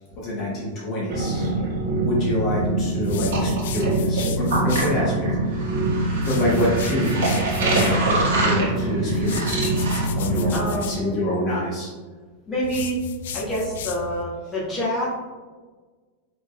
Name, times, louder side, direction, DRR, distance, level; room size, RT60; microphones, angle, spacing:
voice 1, 0.2-1.5 2.0-5.7 6.2-7.3 7.6-9.7 10.1-11.9, left 1 dB, 30° left, -5 dB, 1.0 m, -26 dB
sound 1, 1.1-10.6, right 2 dB, 85° right, 1.2 m, -23 dB
sound 2, 3.0-5.0 6.1-8.0 9.1-11.0 12.6-14.2, left 6 dB, 75° left, 0.3 m, -34 dB
voice 2, 10.5-11.3 12.5-13.0 13.3-15.1, equal, 10° left, -8 dB, 1.1 m, -27 dB
5.4 x 3.0 x 2.4 m, 1.4 s
supercardioid pair, 160°, 0 cm